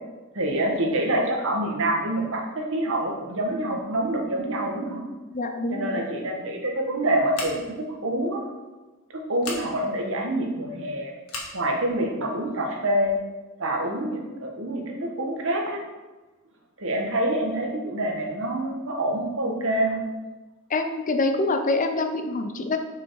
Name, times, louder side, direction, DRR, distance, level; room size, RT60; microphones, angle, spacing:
voice 1, 0.3-5.0 5.7-8.4 9.1-11.1 11.5-13.2 13.6-15.8 16.8-20.0, right 1 dB, 65° right, 1 dB, 1.5 m, -26 dB
voice 2, 5.3-6.0 20.7-22.8, left 2 dB, 40° left, 6 dB, 0.6 m, -25 dB
Scissors, 7.3-7.8 9.4-9.6 11.3-11.6, left 3 dB, 70° left, 1.7 m, -35 dB
6.9 x 5.6 x 4.7 m, 1.2 s
head